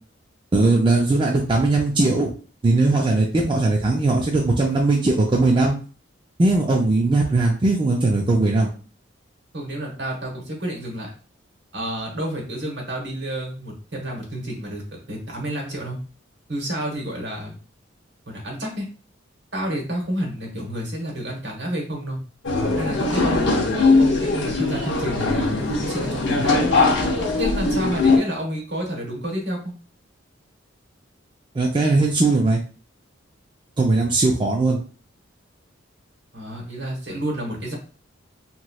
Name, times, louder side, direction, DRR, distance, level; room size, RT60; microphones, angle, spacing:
voice 1, 0.5-2.3 2.6-5.8 6.4-8.7 31.5-32.6 33.8-34.8, right 2 dB, 25° right, -1 dB, 0.4 m, -19 dB
voice 2, 9.5-11.1 11.7-14.8 15.1-16.0 16.5-17.6 18.3-18.9 19.5-22.2 22.7-26.7 27.4-29.7 36.3-37.8, right 1 dB, 60° right, 0 dB, 1.1 m, -30 dB
sound 1, 22.4-28.2, left 3 dB, 65° left, 0.7 m, -20 dB
3.0 x 2.9 x 2.2 m, 0.38 s
head